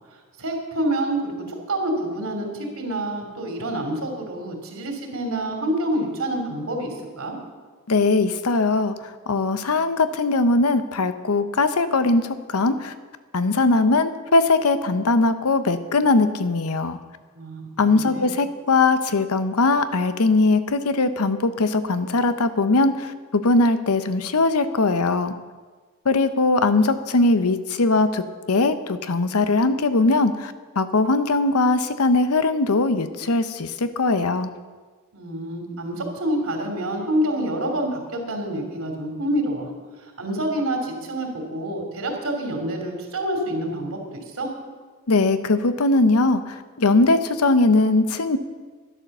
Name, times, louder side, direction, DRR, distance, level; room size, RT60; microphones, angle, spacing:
voice 1, 0.4-7.4 17.3-18.3 35.1-39.7 40.0-44.5, right 1 dB, 70° right, 2 dB, 3.0 m, -27 dB
voice 2, 7.9-12.9 13.3-17.0 17.8-25.3 26.0-34.5 45.1-48.4, left 3 dB, 75° left, 11 dB, 0.8 m, -20 dB
12.0 x 11.0 x 6.7 m, 1.5 s
head